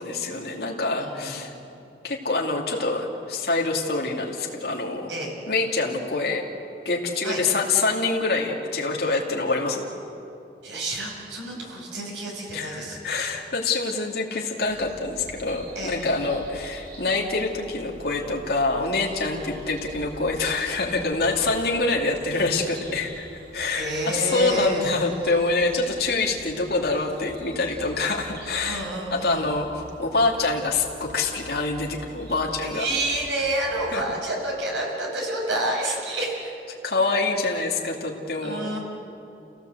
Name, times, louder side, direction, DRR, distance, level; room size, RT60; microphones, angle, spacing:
voice 1, 0.0-1.5 2.0-5.1 5.5-6.4 6.8-9.9 12.5-23.3 23.5-29.7 30.0-32.9 33.9-34.0 36.8-38.7, left 3 dB, 60° left, -2 dB, 2.7 m, -25 dB
voice 2, 1.0-1.4 5.1-5.3 7.2-7.4 10.6-13.0 15.7-16.1 19.3-19.5 21.3-21.5 23.7-24.9 28.6-29.5 32.6-36.5 38.4-38.8, right 1 dB, 85° right, -1 dB, 6.4 m, -29 dB
sound 1, 14.6-34.0, right 1 dB, 65° right, 6.6 m, -46 dB
29.5 x 17.0 x 8.0 m, 2.7 s
head